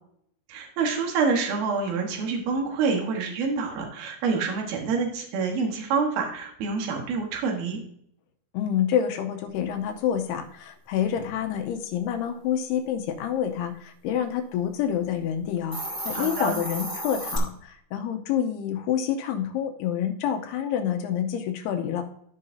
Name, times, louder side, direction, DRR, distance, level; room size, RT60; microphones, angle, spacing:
voice 1, 0.5-7.8 16.1-16.6, right 5 dB, 70° right, 2 dB, 3.1 m, -27 dB
voice 2, 8.5-22.0, left 9 dB, 85° left, 5 dB, 2.7 m, -28 dB
Hiss, 15.6-17.4, right 1 dB, 35° right, 0.5 m, -33 dB
14.0 x 5.6 x 2.6 m, 0.71 s
omnidirectional pair, 4.8 m